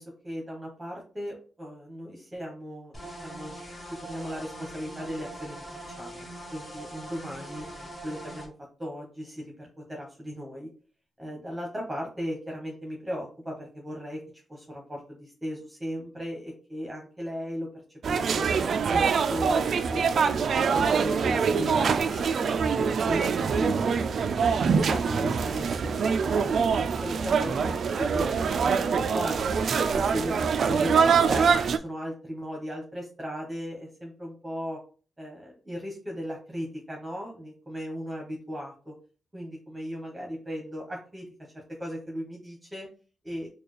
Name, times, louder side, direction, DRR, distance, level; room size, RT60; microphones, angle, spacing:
voice 1, 0.0-3.6 3.9-5.6 5.9-8.5 8.8-10.7 11.2-14.2 14.5-18.5 18.8-24.0 24.7-26.5 26.9-29.5 29.9-34.8 35.2-38.9 39.3-41.3 41.5-42.9 43.2-43.5, equal, 15° right, -1 dB, 1.0 m, -37 dB
sound 1, 2.9-8.5, right 1 dB, 25° left, 1.3 m, -42 dB
sound 2, 18.0-31.8, right 6 dB, 65° right, 0.3 m, -24 dB
4.3 x 2.3 x 3.2 m, 0.38 s
cardioid pair, 85°, 0 cm